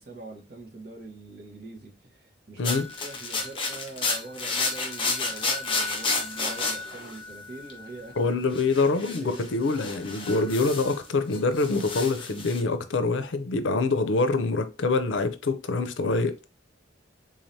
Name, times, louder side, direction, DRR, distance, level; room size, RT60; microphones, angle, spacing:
voice 1, 0.0-8.3 8.7-9.4, right 2 dB, 55° right, 1.2 m, -43 dB
sound 1, 2.6-7.9 8.5-11.1 11.3-12.6, left 3 dB, 25° left, 0.9 m, -31 dB
voice 2, 8.2-16.4, left 3 dB, 80° left, 0.5 m, -25 dB
3.7 x 3.2 x 2.7 m
head